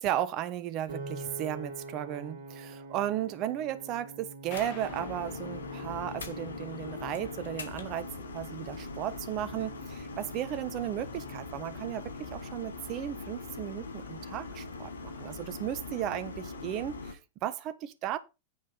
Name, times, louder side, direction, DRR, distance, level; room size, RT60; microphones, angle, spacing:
voice 1, 0.0-18.2, right 12 dB, 40° right, 1.2 m, -35 dB
Piano, 0.9-13.1, right 2 dB, 65° right, 2.1 m, -47 dB
sound 1, 4.5-17.1, left 4 dB, 70° left, 1.5 m, -41 dB
sound 2, 4.5-6.8, left 4 dB, 50° left, 3.8 m, -48 dB
9.6 x 5.0 x 5.5 m
figure-of-eight pair, 90°, 0 cm